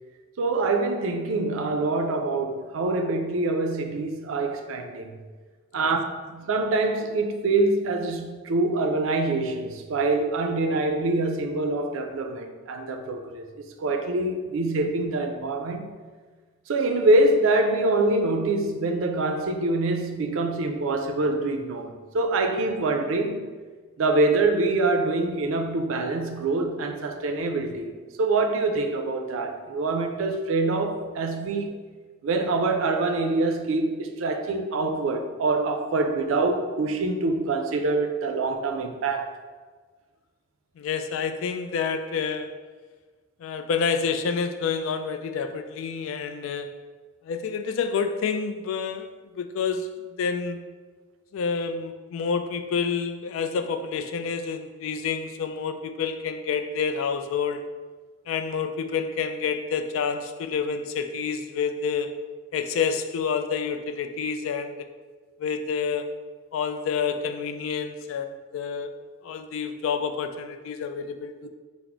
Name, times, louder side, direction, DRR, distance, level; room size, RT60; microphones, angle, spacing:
voice 1, 0.4-5.1 5.7-6.0 6.3-13.4 13.8-16.0 16.7-23.5 24.0-31.8 32.2-39.4, right 2 dB, 80° right, 0.4 m, -25 dB
voice 2, 40.8-42.5 43.4-46.7 47.2-50.7 51.3-57.7 58.3-62.2 62.5-64.9 65.4-66.1 66.5-68.9 69.2-71.5, left 6 dB, 80° left, 0.3 m, -28 dB
4.0 x 2.0 x 4.4 m
head